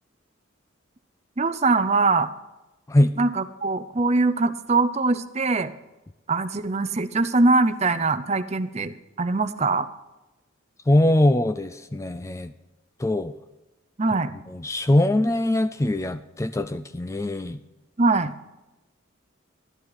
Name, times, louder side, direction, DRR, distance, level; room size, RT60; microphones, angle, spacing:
voice 1, 1.4-2.3 3.2-5.7 6.3-9.9 14.0-14.3 18.0-18.3, right 3 dB, 30° right, 12 dB, 0.6 m, -22 dB
voice 2, 10.9-12.5 13.0-13.3 14.5-17.6, left 1 dB, 15° left, 11 dB, 0.3 m, -22 dB
12.5 x 11.5 x 4.1 m, 1.0 s
head